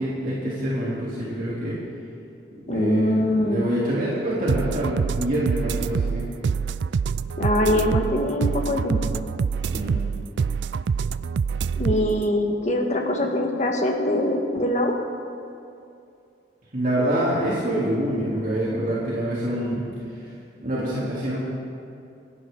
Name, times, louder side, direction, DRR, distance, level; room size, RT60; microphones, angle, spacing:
voice 1, 0.0-1.8 2.5-6.3 9.7-10.0 16.7-19.9 20.6-21.4, right 1 dB, 50° right, -8 dB, 3.4 m, -26 dB
voice 2, 2.7-3.7 7.4-9.2 11.8-14.9, left 1 dB, 40° left, 2 dB, 1.7 m, -23 dB
sound 1, 4.5-12.2, right 5 dB, 85° right, 0.4 m, -26 dB
28.0 x 11.5 x 4.0 m, 2.5 s
head